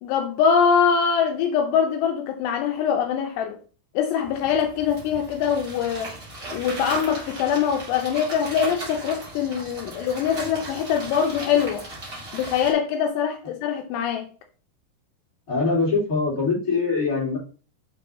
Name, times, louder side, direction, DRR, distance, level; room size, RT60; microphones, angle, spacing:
voice 1, 0.0-3.6 4.0-6.2 6.5-11.8 12.3-14.3, left 7 dB, 80° left, 2.8 m, -23 dB
sound 1, 4.2-12.7, right 2 dB, 30° right, 1.7 m, -37 dB
voice 2, 15.5-17.4, left 4 dB, 20° left, 3.0 m, -23 dB
7.1 x 5.7 x 2.7 m
omnidirectional pair, 5.0 m